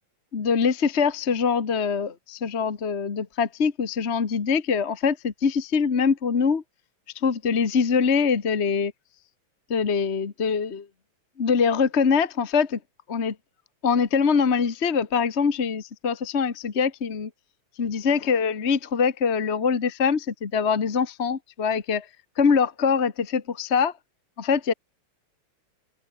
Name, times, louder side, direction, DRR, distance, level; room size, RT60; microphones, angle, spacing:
voice 1, 0.3-6.6 7.1-8.9 9.7-10.9 11.4-12.8 13.1-13.3 13.8-17.3 17.8-22.1 22.4-23.9 24.4-24.7, left 6 dB, 40° left, 1.0 m, -23 dB
open air
omnidirectional pair, 3.4 m